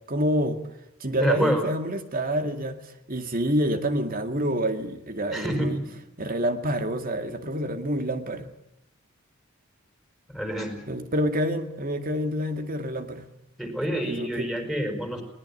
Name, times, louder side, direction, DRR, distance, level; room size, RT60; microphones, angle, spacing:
voice 1, 0.1-0.6 1.0-2.8 3.1-5.8 6.2-8.5 10.9-13.2 14.0-14.5, equal, 45° right, 8 dB, 2.1 m, -27 dB
voice 2, 1.2-1.6 5.3-5.9 10.3-10.8 13.6-15.2, equal, ahead, 6 dB, 4.8 m, -27 dB
21.0 x 19.5 x 9.9 m, 0.85 s
head